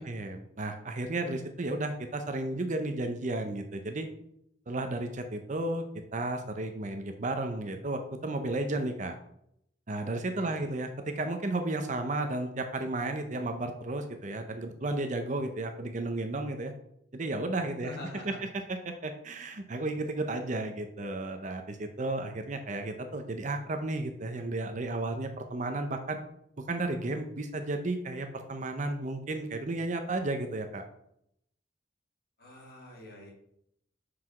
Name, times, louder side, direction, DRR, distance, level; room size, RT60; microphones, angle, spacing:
voice 1, 0.0-4.1 4.7-5.9 6.1-9.1 9.9-16.7 17.1-18.0 18.3-18.4 18.7-26.2 26.7-30.8, right 2 dB, 40° right, 6 dB, 0.7 m, -33 dB
voice 2, 10.4-10.7 17.8-18.4 32.4-33.3, left 1 dB, 55° left, -1 dB, 2.4 m, -45 dB
5.9 x 4.8 x 5.9 m, 0.75 s
head